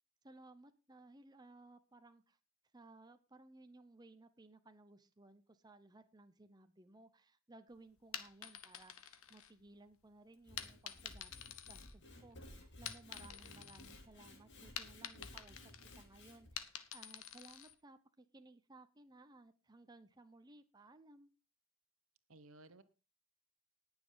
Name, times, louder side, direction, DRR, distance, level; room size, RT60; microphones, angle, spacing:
voice 1, 0.2-2.4 2.7-21.3, right 2 dB, 20° right, 0.8 m, -60 dB
sound 1, 8.0-9.9 10.6-12.3 12.7-14.0 14.3-17.7, left 9 dB, 85° left, 1.4 m, -49 dB
Sawing / Wood, 10.3-16.5, left 1 dB, 55° left, 3.0 m, -57 dB
voice 2, 13.3-13.9 22.3-22.8, right 2 dB, 75° right, 1.2 m, -60 dB
19.5 x 7.1 x 3.9 m
head